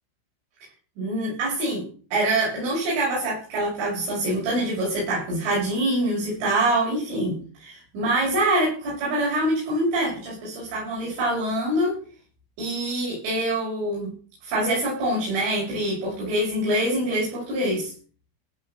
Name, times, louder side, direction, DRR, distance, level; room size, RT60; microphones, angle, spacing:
voice 1, 1.0-1.9 2.1-12.0 12.6-14.1 14.4-17.9, right 1 dB, 90° right, -6 dB, 8.9 m, -25 dB
17.0 x 5.8 x 7.3 m, 0.41 s
omnidirectional pair, 5.5 m